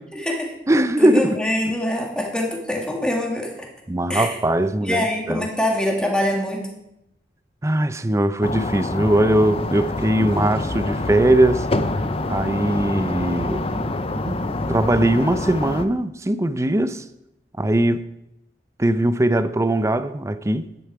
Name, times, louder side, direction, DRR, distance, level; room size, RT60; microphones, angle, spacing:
voice 1, 0.1-0.5 1.0-3.7 4.1-4.3 4.8-6.7, left 1 dB, 5° left, 2.1 m, -24 dB
voice 2, 0.7-1.3 1.7-1.8 3.9-5.5 7.6-11.7 12.3-13.9 14.2-14.4 14.7-17.0 17.6-18.0 18.8-20.7, right 1 dB, 15° right, 0.5 m, -20 dB
sound 1, 8.4-15.8, left 2 dB, 35° left, 0.6 m, -26 dB
11.0 x 10.0 x 4.7 m
head